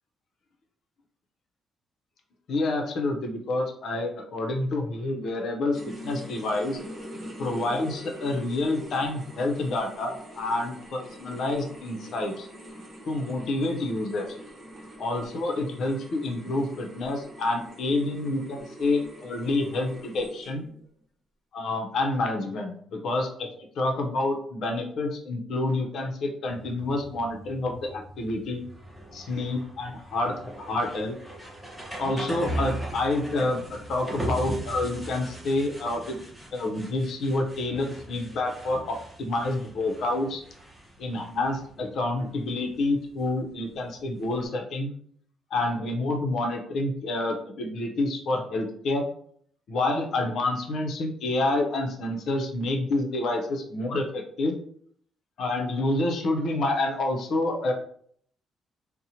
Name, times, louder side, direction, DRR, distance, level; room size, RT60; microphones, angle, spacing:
voice 1, 2.5-6.8 7.4-12.5 13.1-14.4 15.0-20.6 21.5-23.3 23.8-28.6 29.1-31.2 32.0-36.2 36.5-40.4 41.0-44.9 45.5-49.1 49.7-54.6 55.4-57.7, left 2 dB, 65° left, 2 dB, 0.6 m, -28 dB
sound 1, 5.7-20.8, equal, 45° right, 0.8 m, -44 dB
sound 2, 26.5-44.4, right 1 dB, 10° right, 1.0 m, -39 dB
2.7 x 2.1 x 2.8 m, 0.62 s
cardioid pair, 90°, 0 cm